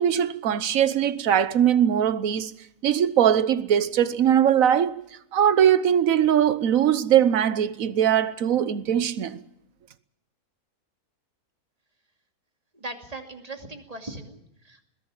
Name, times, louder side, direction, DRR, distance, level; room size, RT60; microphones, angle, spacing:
voice 1, 0.0-2.5 2.8-5.0 5.3-9.4, right 9 dB, 60° right, 1.3 m, -21 dB
voice 2, 12.7-14.9, right 2 dB, 25° right, 2.5 m, -39 dB
21.0 x 16.0 x 8.9 m
omnidirectional pair, 1.6 m